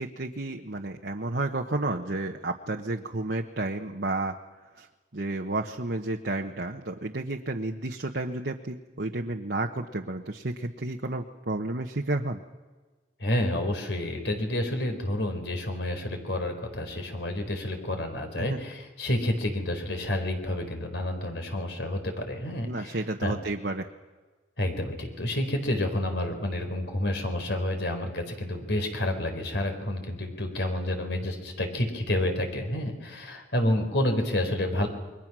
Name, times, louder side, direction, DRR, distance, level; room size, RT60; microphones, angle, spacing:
voice 1, 0.0-4.4 4.8-4.9 5.1-12.4 18.4-18.6 22.6-23.9, right 2 dB, 65° right, 2 dB, 1.2 m, -31 dB
voice 2, 13.2-23.3 24.6-34.9, left 1 dB, 75° left, 5 dB, 4.5 m, -29 dB
28.5 x 22.5 x 6.2 m, 1.3 s
head